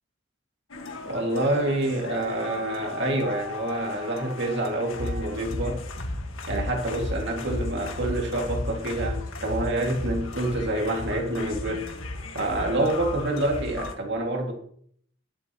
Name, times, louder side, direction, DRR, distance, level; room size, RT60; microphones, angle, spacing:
sound 1, 0.7-13.9, left 2 dB, 80° left, 1.7 m, -34 dB
voice 1, 1.0-5.8 6.5-11.9 12.3-14.5, right 1 dB, 60° right, 2.2 m, -27 dB
21.0 x 8.1 x 3.0 m
head